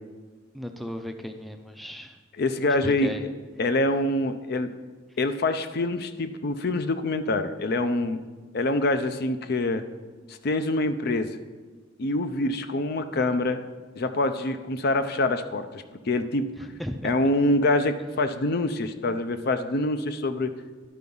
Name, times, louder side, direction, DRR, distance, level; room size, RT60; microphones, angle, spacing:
voice 1, 0.5-2.1 2.8-3.2 16.6-17.1, equal, ahead, 6 dB, 0.4 m, -35 dB
voice 2, 2.3-3.2 3.6-4.7 5.2-8.2 8.5-9.8 10.3-11.4 12.0-13.6 14.0-16.5 17.0-20.5, left 2 dB, 55° left, 10 dB, 0.5 m, -25 dB
11.5 x 4.7 x 5.4 m, 1.3 s
head